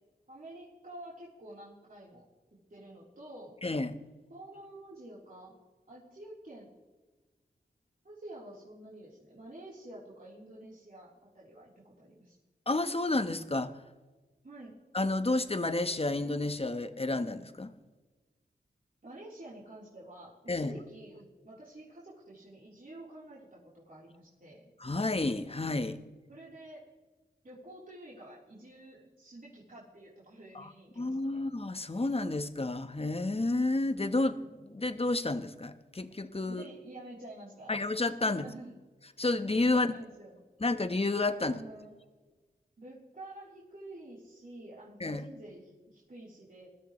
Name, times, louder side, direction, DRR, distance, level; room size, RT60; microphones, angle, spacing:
voice 1, 0.3-2.3 2.7-3.6 4.3-5.6 5.9-6.7 8.0-12.4 14.4-14.8 19.0-24.6 26.3-26.8 27.4-31.4 36.5-37.7 38.2-38.8 39.7-40.4 41.4-41.9 42.8-46.7, right 1 dB, 50° right, -7 dB, 3.9 m, -49 dB
voice 2, 3.6-4.0 12.7-13.7 14.9-17.7 20.5-20.7 24.8-26.0 30.5-30.7 31.0-36.6 37.7-38.5 39.2-39.9 40.6-41.6 45.0-45.2, left 2 dB, 35° left, 9 dB, 1.2 m, -30 dB
21.5 x 13.5 x 3.2 m, 1.3 s
cardioid pair, 50°, 18 cm